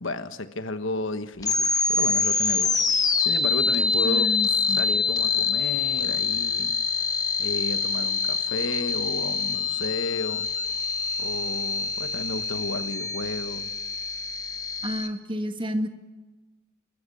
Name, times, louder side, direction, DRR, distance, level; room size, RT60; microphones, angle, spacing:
voice 1, 0.0-2.7 3.2-4.3 4.8-6.8 7.4-10.5 11.2-13.7, left 2 dB, 75° left, 10 dB, 1.4 m, -33 dB
sound 1, 1.4-15.1, left 4 dB, 20° left, 1.4 m, -25 dB
voice 2, 4.0-4.8 14.8-15.9, equal, 25° right, 7 dB, 1.7 m, -30 dB
28.5 x 14.0 x 9.3 m, 1.2 s
head